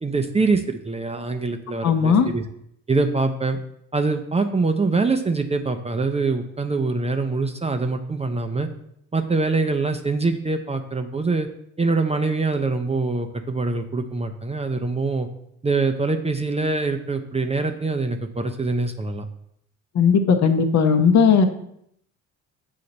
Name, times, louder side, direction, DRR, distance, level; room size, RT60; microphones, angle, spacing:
voice 1, 0.0-2.4 2.9-3.6 3.9-8.7 9.1-11.5 11.8-15.3 15.6-19.2, right 3 dB, 15° right, 5 dB, 0.6 m, -24 dB
voice 2, 1.8-2.3 19.9-21.5, left 6 dB, 45° left, 7 dB, 0.8 m, -17 dB
6.9 x 2.8 x 5.2 m, 0.73 s
hypercardioid pair, 60°, 38 cm